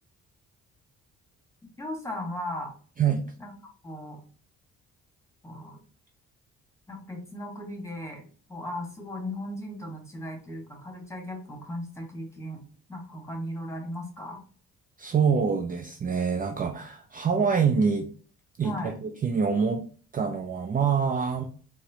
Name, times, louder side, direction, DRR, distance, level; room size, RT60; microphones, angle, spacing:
voice 1, 1.8-2.7 3.4-3.5 3.8-4.2 5.4-5.8 6.9-8.2 8.5-12.6 12.9-14.4 18.6-18.9, left 1 dB, 10° left, 1 dB, 1.3 m, -37 dB
voice 2, 3.0-3.3 15.0-18.1 18.6-19.9 20.1-21.4, right 6 dB, 30° right, 4 dB, 0.4 m, -25 dB
4.1 x 2.1 x 2.8 m, 0.42 s
cardioid pair, 90°, 30 cm